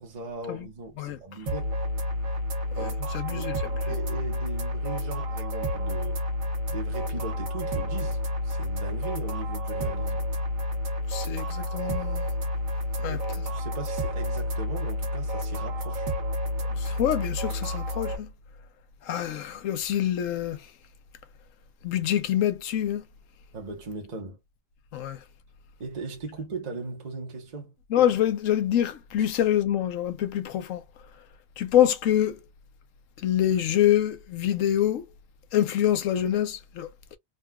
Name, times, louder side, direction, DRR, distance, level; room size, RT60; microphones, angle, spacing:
voice 1, 0.0-1.8 2.7-3.5 3.9-6.2 6.7-10.3 13.0-16.1 23.5-24.4 25.8-27.7, right 3 dB, 35° right, 0.9 m, -38 dB
sound 1, 1.5-18.2, left 1 dB, 85° right, 1.5 m, -30 dB
voice 2, 2.8-3.6 11.1-12.3 13.0-13.2 16.8-18.3 19.0-20.7 21.8-23.0 24.9-25.2 27.9-30.8 31.6-32.4 33.2-35.0 35.5-36.9, left 11 dB, 75° left, 1.0 m, -25 dB
3.8 x 2.3 x 2.2 m
omnidirectional pair, 1.4 m